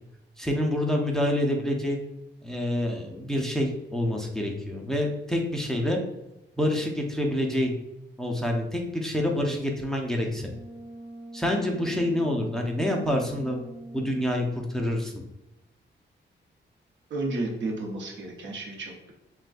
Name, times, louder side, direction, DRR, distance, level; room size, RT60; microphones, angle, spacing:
voice 1, 0.4-2.0 2.4-6.0 6.6-7.7 8.2-10.5 11.3-13.6 13.9-15.2, left 1 dB, 5° left, 0 dB, 0.5 m, -27 dB
Brass instrument, 10.3-14.6, right 1 dB, 35° right, 0.8 m, -43 dB
voice 2, 17.1-19.1, right 2 dB, 85° right, 0 dB, 0.9 m, -32 dB
6.2 x 2.3 x 2.5 m, 0.93 s
wide cardioid pair, 145°, 19 cm